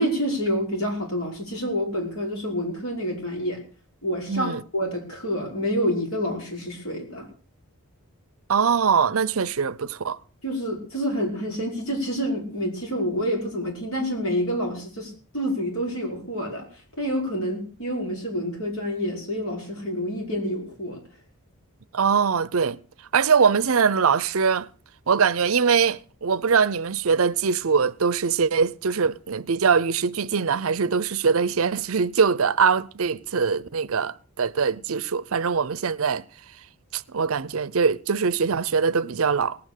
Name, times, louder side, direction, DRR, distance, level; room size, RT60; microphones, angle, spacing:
voice 1, 0.0-3.6 4.0-7.3 10.4-16.7 17.0-21.0, equal, 65° left, 5.7 m, -28 dB
voice 2, 4.3-4.6 8.5-10.2 21.9-22.8 23.1-24.7 25.1-36.2 36.9-39.6, right 5 dB, 65° right, 0.6 m, -22 dB
18.5 x 8.8 x 6.6 m
head